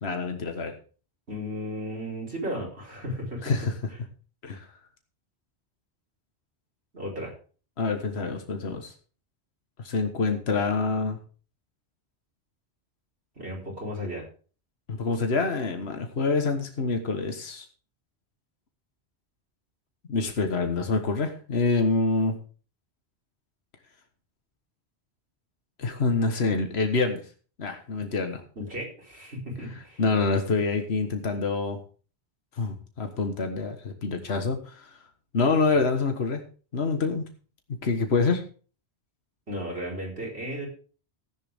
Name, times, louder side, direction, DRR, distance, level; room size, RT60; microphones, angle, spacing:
voice 1, 0.0-0.7 3.4-3.7 4.4-4.7 7.8-8.9 9.8-11.2 14.9-17.7 20.1-22.4 25.8-27.2 27.6-28.4 30.0-31.8 32.6-34.9 35.3-36.4 36.7-37.2 37.8-38.4, left 4 dB, 75° left, 5 dB, 1.7 m, -26 dB
voice 2, 1.3-3.6 6.9-7.3 13.4-14.2 28.6-30.0 39.5-40.7, equal, 75° right, -3 dB, 5.0 m, -34 dB
15.0 x 10.5 x 3.6 m, 0.39 s
omnidirectional pair, 1.1 m